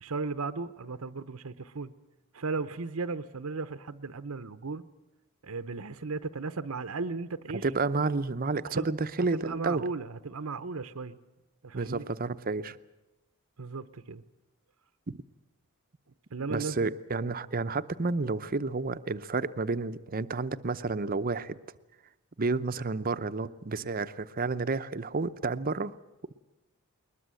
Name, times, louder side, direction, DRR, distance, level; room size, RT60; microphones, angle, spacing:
voice 1, 0.0-1.9 2.3-4.8 5.4-7.6 8.8-8.9 9.3-11.2 11.6-12.0 13.6-14.2 16.3-16.8, right 4 dB, 75° right, 11 dB, 0.8 m, -35 dB
voice 2, 7.6-9.8 11.7-12.8 15.1-15.2 16.5-21.6 22.4-25.9, right 3 dB, 40° right, 13 dB, 0.7 m, -30 dB
21.0 x 20.5 x 7.7 m, 1.0 s
head